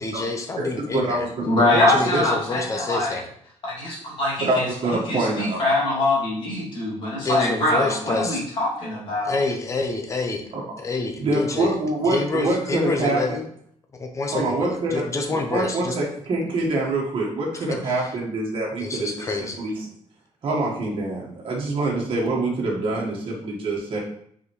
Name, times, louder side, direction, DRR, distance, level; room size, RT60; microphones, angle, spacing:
voice 1, 0.0-1.2 1.6-3.3 7.2-8.4 9.2-10.4 10.8-11.7 12.1-13.4 14.0-16.0 18.8-19.6, left 3 dB, 25° left, 4 dB, 0.8 m, -27 dB
voice 2, 0.6-1.3 1.7-2.2 4.5-5.6 10.5-10.6 11.2-13.4 14.3-19.9 20.4-24.0, right 2 dB, 45° right, -3 dB, 1.6 m, -25 dB
voice 3, 1.4-3.2 3.6-4.7 5.1-9.4, left 2 dB, 45° left, -5 dB, 2.6 m, -23 dB
5.9 x 4.9 x 3.2 m, 0.65 s
cardioid pair, 170°, 12 cm